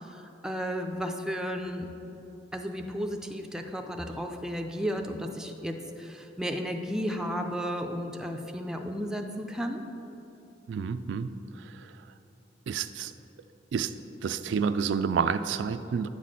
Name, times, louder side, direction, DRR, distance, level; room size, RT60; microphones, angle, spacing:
voice 1, 0.0-1.9 2.5-9.9, equal, 5° right, 3 dB, 0.5 m, -33 dB
voice 2, 10.7-11.9 12.7-13.1 13.7-13.9 14.2-16.1, right 6 dB, 70° right, 11 dB, 0.3 m, -29 dB
9.5 x 4.2 x 7.4 m, 2.9 s
head